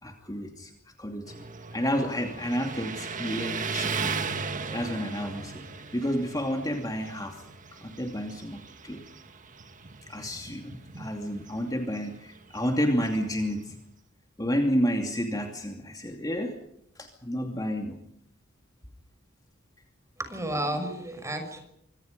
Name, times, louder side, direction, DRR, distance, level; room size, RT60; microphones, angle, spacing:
voice 1, 0.0-0.7 1.0-1.4 1.7-4.1 4.7-5.7 5.9-7.4 7.8-9.0 10.1-13.7 14.4-16.6 17.0-18.0, equal, 20° left, 3 dB, 2.6 m, -30 dB
Motorcycle, 1.3-13.9, right 5 dB, 40° right, 1.7 m, -37 dB
voice 2, 20.2-21.6, right 1 dB, 15° right, 7 dB, 6.0 m, -32 dB
25.5 x 25.0 x 5.3 m, 0.75 s
head